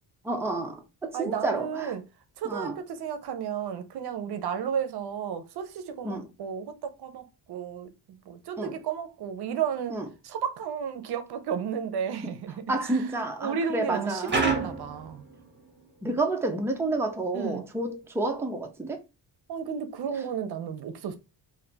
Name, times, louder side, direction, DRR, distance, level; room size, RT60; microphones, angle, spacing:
voice 1, 0.2-1.9 2.4-2.7 6.0-6.2 8.6-8.8 9.9-10.1 12.2-12.3 12.7-14.3 16.0-19.0, right 2 dB, 5° right, 0.6 m, -30 dB
voice 2, 1.1-2.0 2.4-7.9 8.3-13.0 13.4-15.2 17.3-17.6 19.5-21.1, right 7 dB, 65° right, 0.7 m, -33 dB
sound 1, 14.3-15.9, right 4 dB, 25° right, 1.5 m, -29 dB
3.3 x 2.6 x 3.9 m
cardioid pair, 125°, 42 cm